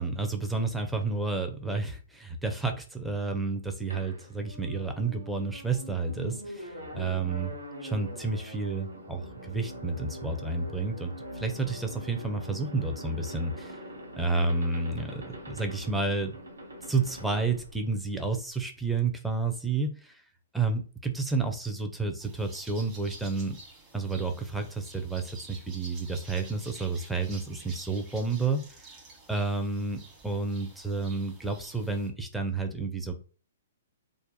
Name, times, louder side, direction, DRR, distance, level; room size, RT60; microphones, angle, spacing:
voice 1, 0.0-7.5 7.8-13.8 14.2-16.4 16.9-20.2 20.5-23.6 23.9-28.6 29.3-33.1, right 3 dB, 5° right, 4 dB, 0.5 m, -30 dB
sound 1, 3.9-18.5, equal, 75° right, 0.8 m, -43 dB
sound 2, 22.2-32.1, right 3 dB, 20° right, 1.1 m, -50 dB
2.5 x 2.1 x 4.0 m, 0.37 s
figure-of-eight pair, 120°, 0 cm